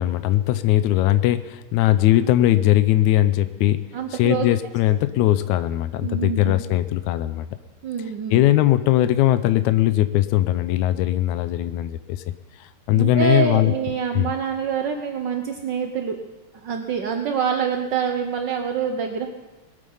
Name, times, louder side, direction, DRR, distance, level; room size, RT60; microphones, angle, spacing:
voice 1, 0.0-7.5 8.3-12.2 12.6-13.7 14.1-14.3, left 14 dB, 85° left, 12 dB, 2.1 m, -20 dB
voice 2, 3.9-4.5 6.0-6.6 7.8-8.4 12.9-16.2 16.6-19.3, right 7 dB, 70° right, 4 dB, 1.1 m, -26 dB
22.0 x 9.0 x 5.5 m, 1.2 s
omnidirectional pair, 3.4 m